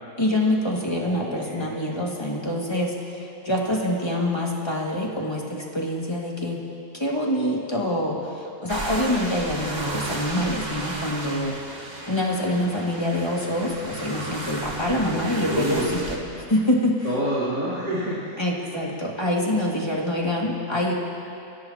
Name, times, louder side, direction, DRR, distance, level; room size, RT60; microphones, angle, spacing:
voice 1, 0.2-6.6 6.9-11.6 12.0-16.2 16.5-17.0 18.4-20.9, left 1 dB, 15° left, -3 dB, 2.1 m, -25 dB
voice 2, 0.9-1.7 15.1-16.0 17.0-18.4, right 1 dB, 70° right, -11 dB, 4.2 m, -28 dB
sound 1, 8.7-16.2, right 1 dB, 25° right, 1.5 m, -34 dB
30.0 x 16.0 x 2.9 m, 2.7 s
omnidirectional pair, 1.9 m